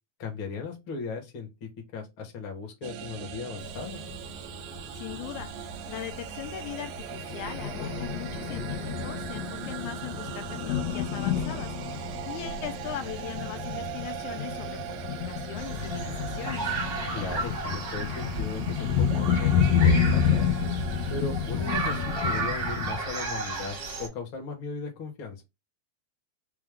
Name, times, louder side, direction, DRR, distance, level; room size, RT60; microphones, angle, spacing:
voice 1, 0.2-4.0 17.1-20.5 21.1-25.5, left 4 dB, 50° left, 1.7 m, -37 dB
sound 1, 2.8-21.9, right 12 dB, 85° right, 2.0 m, -40 dB
Thunder, 3.6-22.9, left 7 dB, 70° left, 1.8 m, -30 dB
voice 2, 4.9-5.5 5.9-16.8, left 10 dB, 85° left, 2.1 m, -40 dB
sound 2, 15.6-24.1, right 3 dB, 50° right, 1.1 m, -34 dB
5.0 x 2.5 x 3.5 m
omnidirectional pair, 3.5 m